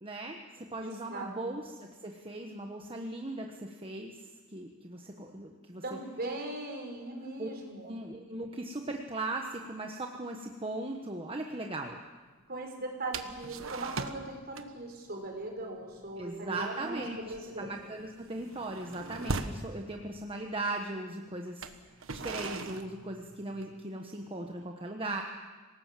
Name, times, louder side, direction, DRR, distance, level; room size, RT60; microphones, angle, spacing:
voice 1, 0.0-6.0 7.4-7.5 7.8-12.0 16.2-25.2, right 2 dB, 25° right, 2 dB, 1.3 m, -38 dB
voice 2, 0.8-1.5 5.8-8.0 12.5-17.7, right 2 dB, 50° right, 2 dB, 5.2 m, -39 dB
sound 1, 13.1-14.3 14.5-14.9 15.2-15.4 15.8-16.1 16.3-16.6 17.0-19.7 20.5-20.6 21.5-23.8, right 3 dB, 80° right, 1.4 m, -39 dB
27.0 x 18.5 x 7.6 m, 1.3 s
head